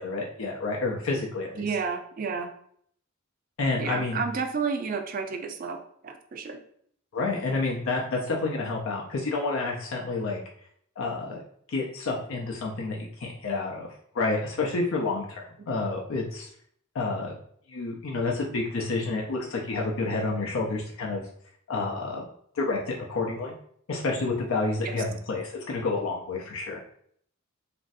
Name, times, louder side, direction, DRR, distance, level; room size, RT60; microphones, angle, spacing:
voice 1, 0.0-1.6 3.6-4.2 7.1-10.4 11.0-11.4 11.7-13.9 14.1-16.5 16.9-17.3 17.7-21.2 21.7-22.2 22.5-23.5 23.9-26.8, left 3 dB, 80° left, -1 dB, 0.5 m, -29 dB
voice 2, 1.6-2.5 3.8-6.6 24.8-25.0, right 5 dB, 45° right, 6 dB, 0.4 m, -31 dB
3.0 x 2.6 x 2.5 m, 0.64 s
head